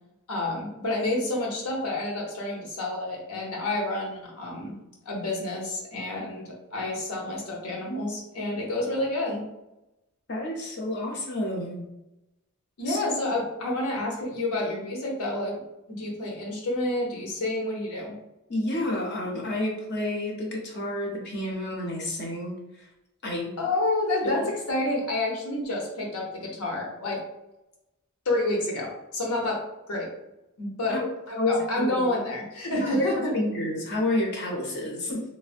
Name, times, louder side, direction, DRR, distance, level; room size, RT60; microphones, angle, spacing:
voice 1, 0.3-4.8 5.1-9.4 12.8-15.5 15.9-18.1 23.6-24.4 24.7-27.2 28.3-29.6 29.9-30.1 30.6-31.0 31.3-33.3, left 2 dB, 85° left, -1 dB, 0.8 m, -29 dB
voice 2, 10.3-11.9 12.9-13.0 18.5-22.6 23.2-23.6 24.2-24.5 30.9-31.1 31.4-32.1 32.8-35.2, left 1 dB, 50° left, -1 dB, 0.6 m, -29 dB
3.2 x 2.1 x 2.5 m, 0.92 s
head